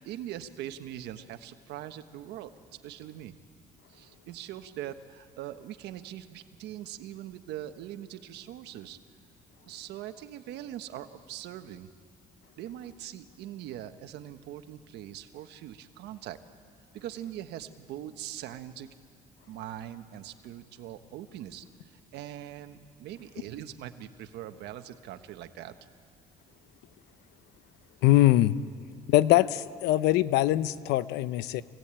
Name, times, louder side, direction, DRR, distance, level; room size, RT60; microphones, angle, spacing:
voice 1, 0.0-2.5 2.8-3.4 3.9-9.0 9.7-11.9 12.6-16.4 16.9-18.9 19.5-25.7, right 12 dB, 80° right, 9 dB, 1.3 m, -42 dB
voice 2, 28.0-28.6 29.1-31.6, left 15 dB, 90° left, 15 dB, 0.8 m, -22 dB
26.5 x 17.0 x 8.9 m, 2.2 s
cardioid pair, 110°, 17 cm